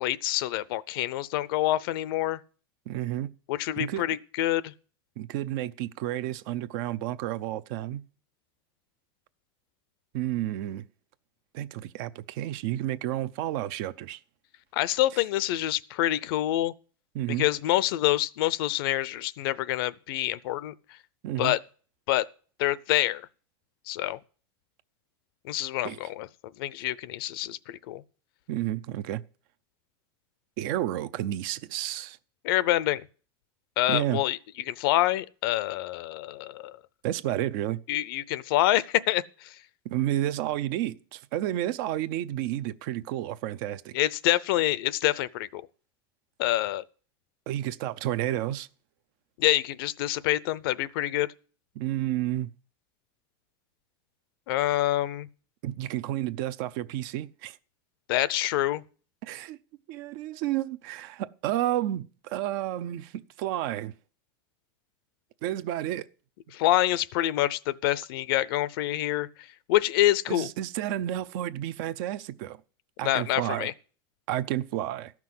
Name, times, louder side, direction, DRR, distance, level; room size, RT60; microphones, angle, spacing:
voice 1, 0.0-2.4 3.5-4.7 14.7-16.7 17.4-20.7 21.4-21.6 22.1-22.3 22.6-23.2 23.9-24.2 25.4-26.3 26.6-28.0 32.4-33.0 33.8-34.4 34.7-36.8 37.9-39.5 43.9-45.6 46.4-46.8 49.4-51.3 54.5-55.3 58.1-58.8 66.5-69.3 69.7-70.5 73.0-73.7, left 15 dB, 70° left, 0.6 m, -26 dB
voice 2, 2.9-3.3 3.8-4.1 5.2-8.0 10.1-10.9 11.5-14.2 15.1-15.2 17.1-17.5 21.2-21.6 25.8-26.0 28.5-29.2 30.6-32.2 33.9-34.2 37.0-37.8 39.8-43.9 47.5-48.7 51.8-52.5 55.6-57.6 59.2-59.6 59.9-63.9 65.4-66.1 70.3-72.6 73.0-73.7 74.3-75.1, right 13 dB, 60° right, 0.6 m, -31 dB
13.5 x 6.0 x 7.7 m
supercardioid pair, 140°, 12 cm